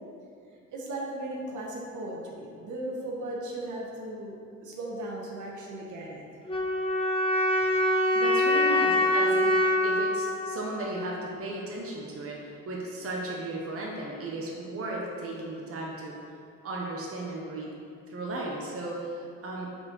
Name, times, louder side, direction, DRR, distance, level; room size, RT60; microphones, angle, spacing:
voice 1, 0.7-6.2, right 1 dB, 75° right, -2 dB, 1.4 m, -37 dB
sound 1, 6.5-11.5, left 1 dB, 20° left, 1.2 m, -25 dB
voice 2, 8.1-16.2 16.6-17.7 18.1-19.7, right 2 dB, 50° right, -2 dB, 1.1 m, -35 dB
5.3 x 4.5 x 6.1 m, 2.4 s
cardioid pair, 90°, 30 cm